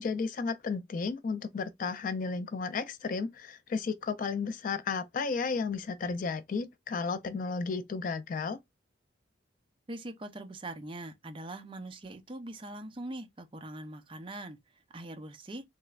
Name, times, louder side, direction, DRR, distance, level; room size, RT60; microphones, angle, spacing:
voice 1, 0.0-8.6, left 4 dB, 45° left, 0.3 m, -33 dB
voice 2, 9.9-15.7, right 1 dB, 25° right, 0.5 m, -42 dB
3.3 x 3.0 x 2.3 m
head